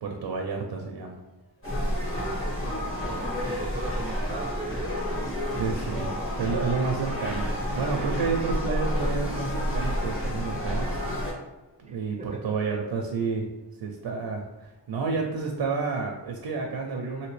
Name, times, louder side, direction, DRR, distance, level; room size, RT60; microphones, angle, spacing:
voice 1, 0.0-1.2 5.6-6.1 6.4-10.9 11.8-13.5 13.8-17.3, right 4 dB, 70° right, 2 dB, 0.5 m, -30 dB
Motor vehicle (road) / Siren, 1.1-14.1 14.4-15.6 16.2-16.3 16.6-16.7, equal, 55° left, 1.2 m, -52 dB
sound 1, 1.6-11.3, equal, 30° left, 0.9 m, -30 dB
voice 2, 2.1-5.0 11.8-12.5, right 3 dB, 20° right, 3 dB, 0.3 m, -39 dB
2.9 x 2.8 x 3.1 m, 1.0 s
wide cardioid pair, 120°, 43 cm